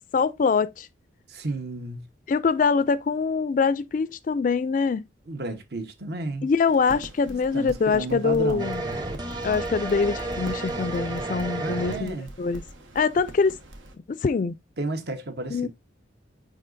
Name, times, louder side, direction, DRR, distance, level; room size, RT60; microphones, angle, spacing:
voice 1, 0.1-0.9 2.3-5.0 6.4-8.8 9.4-12.6 13.0-13.6 14.1-14.5 15.5-15.7, left 5 dB, 45° left, 0.3 m, -24 dB
voice 2, 1.3-2.0 5.3-6.5 7.3-8.7 11.6-12.3 14.8-15.7, right 2 dB, 55° right, 1.0 m, -32 dB
sound 1, 6.6-14.0, right 1 dB, 90° right, 1.4 m, -44 dB
sound 2, 8.6-12.0, right 2 dB, 20° right, 0.9 m, -31 dB
9.9 x 3.9 x 2.6 m
head